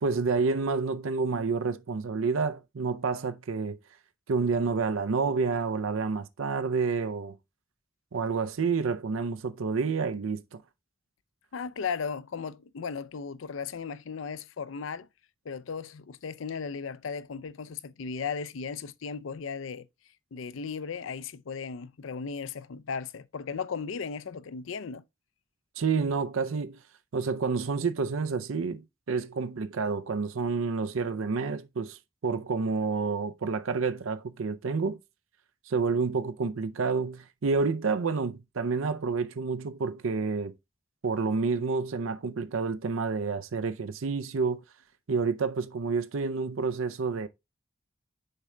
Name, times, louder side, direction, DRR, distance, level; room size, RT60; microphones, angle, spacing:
voice 1, 0.0-3.8 4.3-7.4 8.1-10.6 25.8-26.8 27.1-35.0 35.7-40.5 41.0-44.6 45.1-47.3, right 4 dB, 90° right, 0.5 m, -29 dB
voice 2, 11.5-15.1 15.4-19.9 20.3-25.0, left 5 dB, 80° left, 0.5 m, -36 dB
6.6 x 4.4 x 3.7 m
head